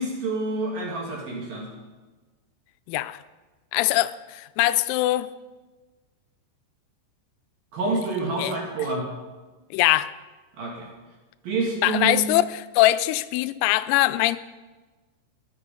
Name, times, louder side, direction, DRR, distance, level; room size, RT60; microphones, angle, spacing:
voice 1, 0.0-1.7 7.7-9.1 10.6-10.9 11.4-12.2, right 3 dB, 55° right, -2 dB, 3.3 m, -28 dB
voice 2, 2.9-3.2 3.7-5.3 8.4-8.5 9.7-10.1 11.8-12.4 12.8-14.4, left 16 dB, 85° left, 14 dB, 3.3 m, -22 dB
20.5 x 7.4 x 5.4 m, 1.2 s
omnidirectional pair, 6.0 m